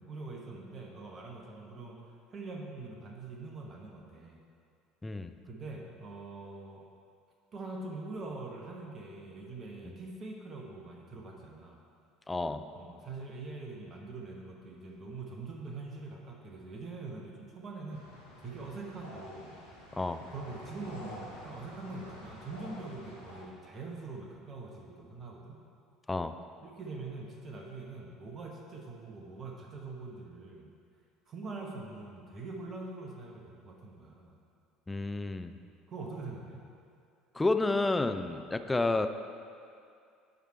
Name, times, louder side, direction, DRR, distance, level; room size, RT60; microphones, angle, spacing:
voice 1, 0.0-2.0 2.3-4.4 5.4-6.8 7.5-11.8 12.7-18.1 18.4-19.6 20.2-25.6 26.6-30.7 31.3-34.4 35.9-36.7, right 3 dB, 35° right, 0 dB, 1.0 m, -43 dB
voice 2, 5.0-5.3 9.8-9.9 12.3-12.6 19.9-20.2 26.1-26.3 34.9-35.5 37.3-39.1, left 2 dB, 15° left, 9 dB, 0.4 m, -30 dB
sound 1, 17.9-23.4, equal, 90° right, 1.9 m, -49 dB
9.3 x 5.0 x 4.4 m, 2.4 s
figure-of-eight pair, 65°, 0 cm